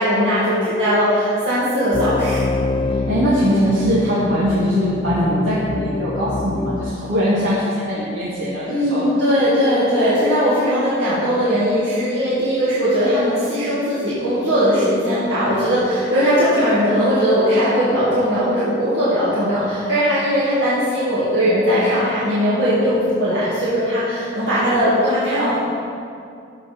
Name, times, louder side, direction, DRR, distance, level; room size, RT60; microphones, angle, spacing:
voice 1, 0.0-2.4 8.7-25.6, equal, 70° right, -11 dB, 2.3 m, -19 dB
sound 1, 1.9-6.9, left 3 dB, 25° left, 0.4 m, -25 dB
voice 2, 2.9-9.0, equal, 90° right, -9 dB, 2.0 m, -21 dB
14.0 x 4.9 x 5.8 m, 2.4 s
head